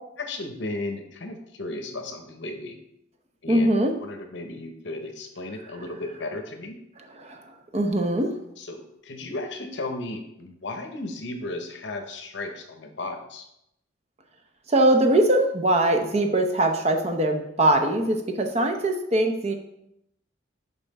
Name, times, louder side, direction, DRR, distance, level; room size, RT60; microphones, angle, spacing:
voice 1, 0.2-2.8 3.4-3.7 4.0-6.8 8.6-13.4, left 2 dB, 65° left, 5 dB, 0.8 m, -35 dB
voice 2, 3.5-3.9 7.2-7.4 7.7-8.3 14.7-19.5, right 1 dB, 35° right, 4 dB, 0.7 m, -21 dB
5.6 x 5.3 x 4.2 m, 0.79 s
head